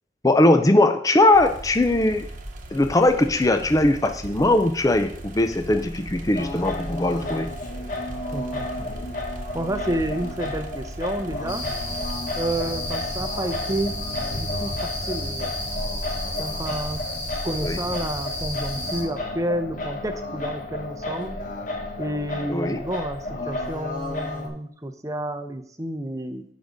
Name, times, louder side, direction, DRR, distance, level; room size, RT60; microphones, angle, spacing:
voice 1, 0.2-2.3 2.7-7.5 17.6-17.8 22.5-22.8, left 1 dB, 20° left, 8 dB, 0.5 m, -20 dB
sound 1, 1.3-12.1, right 1 dB, 45° right, 1.1 m, -38 dB
Singing, 6.3-24.5, left 2 dB, 45° left, 1.4 m, -33 dB
voice 2, 8.3-8.9 9.5-11.7 12.4-13.9 14.3-15.5 16.4-17.0 17.4-21.4 22.0-26.4, right 1 dB, 15° right, 8 dB, 0.7 m, -30 dB
sound 2, 11.5-19.0, left 1 dB, 70° left, 3.0 m, -32 dB
7.5 x 5.2 x 6.3 m, 0.65 s
head